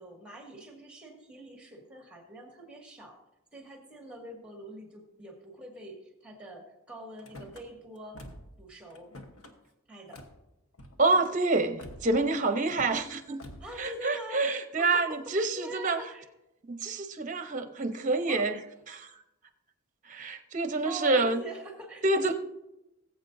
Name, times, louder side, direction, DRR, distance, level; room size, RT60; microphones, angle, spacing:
voice 1, 0.0-3.2 3.5-8.2 8.6-9.1 9.9-10.2 13.6-14.4 14.8-16.3 18.3-18.5 20.8-22.3, right 2 dB, 5° right, 1 dB, 2.0 m, -44 dB
Car / Slam, 7.2-7.6 8.1-8.6 8.9-9.5 10.1-10.4 10.7-11.3 11.8-12.2 12.7-13.1 13.4-13.8, left 1 dB, 85° left, 1.2 m, -47 dB
voice 2, 11.0-13.4 13.8-16.0 16.7-18.6 18.9-19.1 20.0-21.4 22.0-22.3, right 3 dB, 35° right, 8 dB, 0.8 m, -27 dB
19.5 x 8.0 x 2.7 m, 0.92 s
head